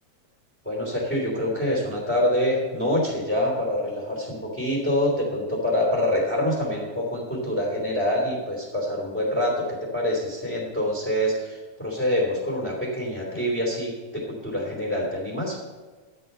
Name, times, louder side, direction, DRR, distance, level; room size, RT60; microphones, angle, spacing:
voice 1, 0.6-15.6, left 1 dB, 5° left, -4 dB, 2.9 m, -26 dB
12.5 x 8.6 x 5.6 m, 1.4 s
omnidirectional pair, 3.3 m